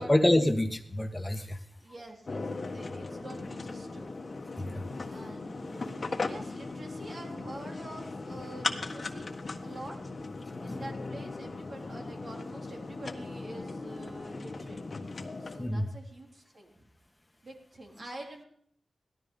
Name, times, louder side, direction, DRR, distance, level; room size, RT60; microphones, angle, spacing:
voice 1, 0.0-1.6 4.6-4.8 10.7-10.8 15.6-15.8, left 1 dB, 20° left, 7 dB, 1.7 m, -26 dB
voice 2, 1.8-4.1 5.1-9.3 9.6-10.0 10.6-14.8 15.4-16.9 17.4-18.5, right 1 dB, 55° right, 1 dB, 3.7 m, -46 dB
sound 1, 2.3-15.6, left 3 dB, 50° left, 1.6 m, -38 dB
17.0 x 13.0 x 5.5 m, 0.64 s
cardioid pair, 60°, 0 cm